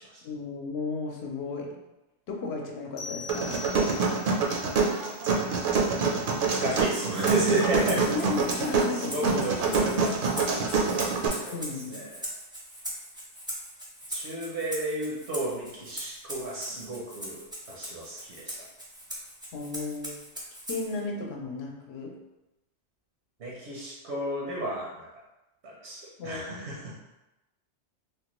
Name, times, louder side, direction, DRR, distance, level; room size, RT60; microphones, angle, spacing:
voice 1, 0.2-1.8 2.3-3.6 8.1-9.3 11.4-12.0 19.5-20.2 20.7-22.2 26.2-26.6, left 4 dB, 75° left, 0 dB, 0.8 m, -34 dB
sound 1, 3.0-4.5, left 4 dB, 45° left, 0.7 m, -41 dB
sound 2, 3.3-11.3, right 4 dB, 60° right, 0.6 m, -26 dB
voice 2, 6.4-8.1 8.6-12.2 14.1-18.6 23.4-25.1 25.6-27.2, right 2 dB, 80° right, -4 dB, 1.0 m, -33 dB
Rattle (instrument), 6.8-21.0, equal, 5° right, 0.5 m, -41 dB
3.4 x 2.1 x 2.9 m, 0.97 s
omnidirectional pair, 1.1 m